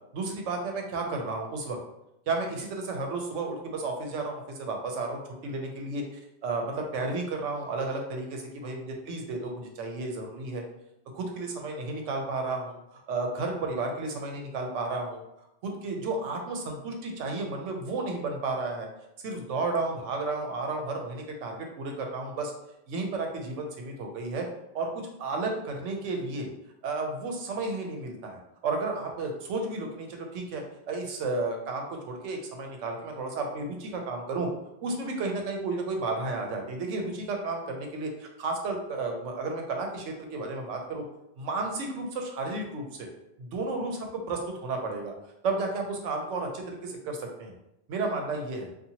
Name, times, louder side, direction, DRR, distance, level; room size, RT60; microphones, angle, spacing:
voice 1, 0.1-1.8 2.3-10.6 11.1-15.2 15.6-18.9 19.2-22.5 22.9-24.5 24.7-26.5 26.8-34.5 34.8-41.0 41.4-43.1 43.4-45.1 45.4-47.5 47.9-48.7, right 3 dB, 90° right, 2 dB, 0.9 m, -32 dB
2.7 x 2.4 x 2.7 m, 0.85 s
omnidirectional pair, 1.2 m